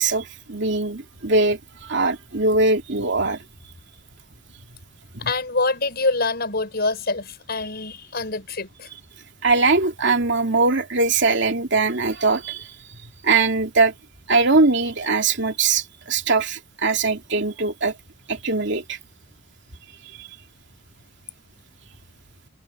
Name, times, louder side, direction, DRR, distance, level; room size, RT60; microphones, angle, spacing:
voice 1, 0.0-3.4 5.1-5.3 9.4-12.8 13.2-13.9 14.3-17.9 18.3-19.0 20.2-20.3, right 3 dB, 65° right, 2.8 m, -21 dB
voice 2, 5.2-8.9, left 3 dB, 55° left, 5.9 m, -25 dB
head